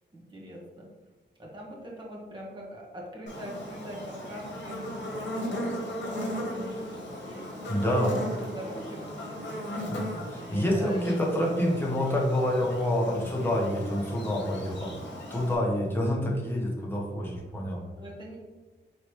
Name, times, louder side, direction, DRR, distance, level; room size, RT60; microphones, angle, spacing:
voice 1, 0.1-0.9 1.4-7.7 8.0-11.1 13.0-13.4 18.0-18.4, equal, 25° right, -3 dB, 1.1 m, -43 dB
Buzz, 3.3-15.5, equal, 65° left, 1.1 m, -37 dB
voice 2, 7.7-8.2 9.8-14.9 15.3-17.8, equal, 10° left, -3 dB, 0.9 m, -27 dB
4.7 x 3.2 x 3.1 m, 1.2 s
wide cardioid pair, 145°, 19 cm